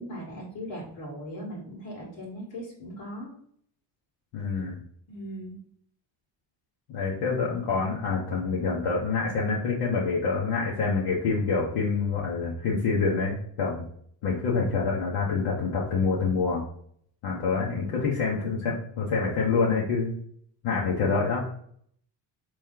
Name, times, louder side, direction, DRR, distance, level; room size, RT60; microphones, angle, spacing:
voice 1, 0.0-3.3 5.1-5.6 17.4-17.9, equal, 85° left, -6 dB, 1.8 m, -39 dB
voice 2, 4.3-4.8 6.9-13.8 14.2-16.6 17.2-20.1 20.6-21.6, left 4 dB, 70° left, -5 dB, 1.1 m, -26 dB
4.2 x 3.2 x 3.7 m, 0.64 s
cardioid pair, 100°, 49 cm